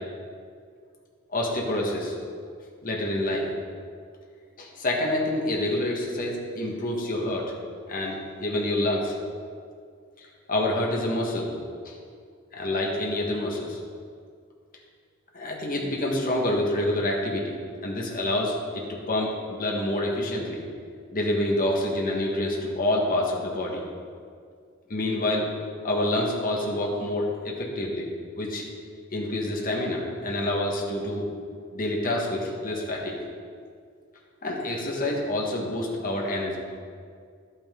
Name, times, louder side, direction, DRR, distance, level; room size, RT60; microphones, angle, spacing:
voice 1, 1.3-2.1 2.8-3.5 4.6-7.5 7.9-9.1 10.2-11.5 11.8-11.9 12.5-13.8 15.3-17.6 17.8-20.6 21.1-23.8 24.9-25.5 25.8-28.1 28.4-28.6 29.1-31.2 31.7-33.2 34.4-36.6, left 1 dB, 40° left, -1 dB, 1.5 m, -27 dB
11.5 x 8.8 x 3.7 m, 2.2 s
head